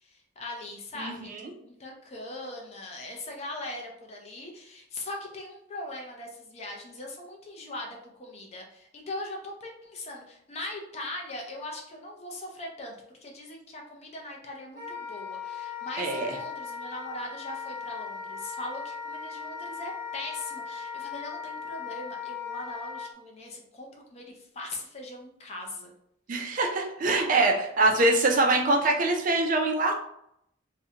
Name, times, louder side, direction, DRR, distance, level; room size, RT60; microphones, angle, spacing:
voice 1, 0.0-1.3 1.6-13.0 13.2-25.9, left 1 dB, 35° left, 1 dB, 0.5 m, -40 dB
voice 2, 1.0-1.4 16.0-16.3 26.3-30.0, right 2 dB, 40° right, 2 dB, 0.4 m, -24 dB
Wind instrument woodwind instrument, 14.7-23.1, left 6 dB, 65° left, 0.9 m, -38 dB
2.5 x 2.1 x 2.7 m, 0.74 s
head